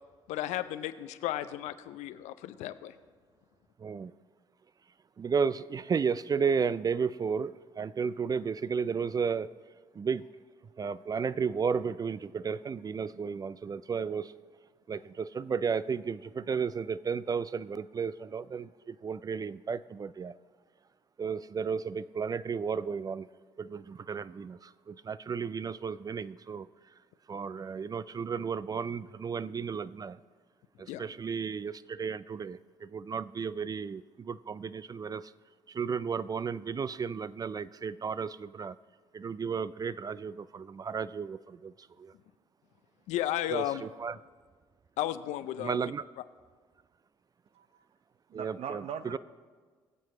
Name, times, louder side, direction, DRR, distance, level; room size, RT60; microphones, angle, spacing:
voice 1, 0.3-2.9 30.9-31.0 43.1-43.8 45.0-45.8 46.2-46.3, left 13 dB, 70° left, 13 dB, 0.5 m, -34 dB
voice 2, 5.2-9.5 10.0-10.2 10.8-14.3 14.9-20.3 21.2-23.3 23.6-24.6 24.9-26.7 27.3-30.2 31.0-35.2 35.7-38.7 39.1-41.7 42.0-42.1 43.5-43.6 44.0-44.1 45.6-46.0 48.3-48.8 49.1-49.2, right 6 dB, 30° right, 17 dB, 0.3 m, -33 dB
voice 3, 47.5-47.8 48.3-49.2, right 7 dB, 55° right, 11 dB, 0.7 m, -40 dB
21.5 x 7.5 x 3.2 m, 1.5 s
hypercardioid pair, 50°, 12 cm